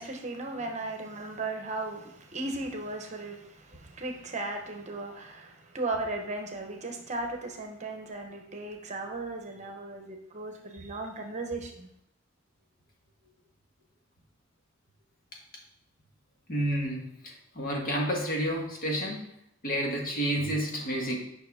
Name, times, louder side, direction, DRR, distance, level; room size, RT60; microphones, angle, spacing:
voice 1, 0.0-11.9, right 2 dB, 35° right, 1.0 m, -36 dB
voice 2, 16.5-19.2 19.6-21.2, equal, 45° left, 1.6 m, -30 dB
8.7 x 5.7 x 3.5 m
head